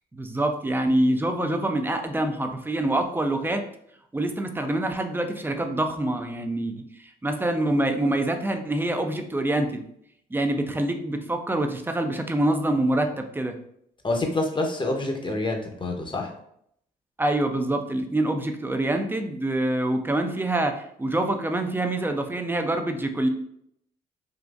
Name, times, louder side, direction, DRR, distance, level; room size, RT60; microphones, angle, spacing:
voice 1, 0.1-3.7 4.1-6.8 7.2-9.8 10.3-13.6 17.2-23.3, right 1 dB, 10° right, 5 dB, 0.5 m, -25 dB
voice 2, 14.0-16.3, left 2 dB, 25° left, 2 dB, 0.8 m, -27 dB
3.8 x 2.4 x 2.4 m, 0.71 s
hypercardioid pair, 50°, 20 cm